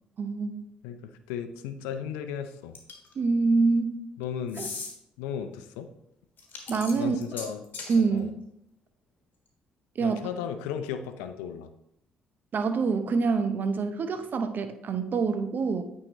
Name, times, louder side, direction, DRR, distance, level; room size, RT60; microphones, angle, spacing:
voice 1, 0.2-0.7 3.2-4.0 4.6-4.7 6.7-7.2 7.9-8.3 10.0-10.2 12.5-15.8, right 4 dB, 50° right, 8 dB, 0.7 m, -26 dB
voice 2, 0.8-2.7 4.2-4.7 5.2-5.9 6.9-7.6 8.1-8.3 10.0-11.7, left 8 dB, 80° left, 8 dB, 0.5 m, -35 dB
sound 1, 2.7-3.1 4.5-4.9 6.4-8.0, left 4 dB, 50° left, 1.4 m, -38 dB
8.7 x 3.8 x 3.0 m, 0.78 s
hypercardioid pair, 50°, 4 cm